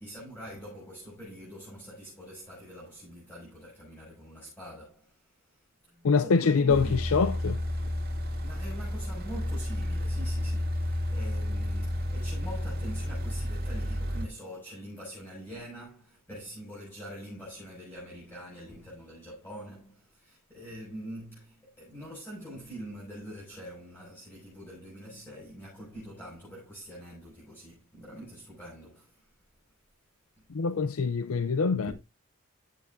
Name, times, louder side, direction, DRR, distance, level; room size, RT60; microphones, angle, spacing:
voice 1, 0.0-7.0 8.4-29.4 30.6-30.7 31.8-31.9, equal, 10° left, 6.3 m, -44 dB
voice 2, 6.0-7.6 30.5-31.9, left 5 dB, 85° left, 0.5 m, -25 dB
sound 1, 6.7-14.3, left 1 dB, 45° right, 2.2 m, -31 dB
14.0 x 7.7 x 2.6 m
head